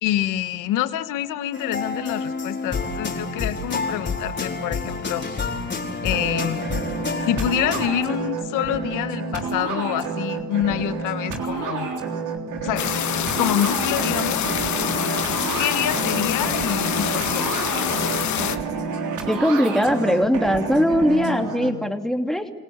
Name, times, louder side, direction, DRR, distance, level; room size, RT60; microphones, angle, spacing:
voice 1, 0.0-5.3 6.0-6.6 7.2-11.9 12.6-12.8 13.4-14.8 15.5-17.5, left 12 dB, 85° left, 12 dB, 1.3 m, -26 dB
sound 1, 1.5-7.9, left 4 dB, 35° left, 4.3 m, -29 dB
sound 2, 6.1-21.7, right 5 dB, 75° right, 3.6 m, -29 dB
sound 3, 12.8-18.6, left 10 dB, 65° left, 1.4 m, -26 dB
voice 2, 19.3-22.5, equal, ahead, 5 dB, 2.9 m, -20 dB
28.0 x 18.0 x 8.8 m, 1.2 s
supercardioid pair, 65°, 31 cm